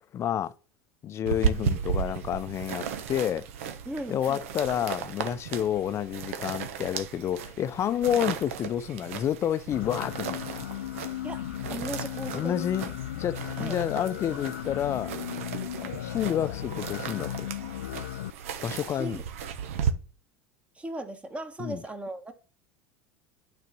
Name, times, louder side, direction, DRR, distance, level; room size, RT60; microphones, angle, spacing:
voice 1, 0.1-0.5 1.0-3.5 4.1-10.6 12.3-12.9 13.2-15.1 15.8-17.5 18.6-19.2 21.6-21.8, left 10 dB, 40° left, 0.6 m, -29 dB
sound 1, 1.3-19.9, right 7 dB, 75° right, 0.9 m, -35 dB
voice 2, 3.8-4.4 8.1-8.2 11.2-11.4 11.7-12.6 13.6-13.8 15.8-16.0 18.9-19.2 20.7-22.3, right 1 dB, 15° right, 1.5 m, -37 dB
sound 2, 9.7-18.3, left 13 dB, 80° left, 0.3 m, -36 dB
9.4 x 4.2 x 6.1 m
hypercardioid pair, 85°, 7 cm